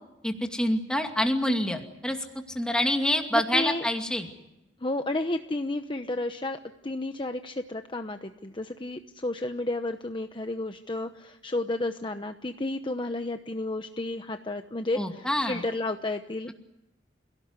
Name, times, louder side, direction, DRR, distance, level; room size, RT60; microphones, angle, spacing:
voice 1, 0.2-2.2 2.5-4.3 14.9-15.6, left 1 dB, 5° left, 4 dB, 2.4 m, -26 dB
voice 2, 3.3-3.9 4.8-16.5, left 2 dB, 25° left, 7 dB, 1.0 m, -32 dB
28.5 x 17.5 x 9.8 m, 0.95 s
head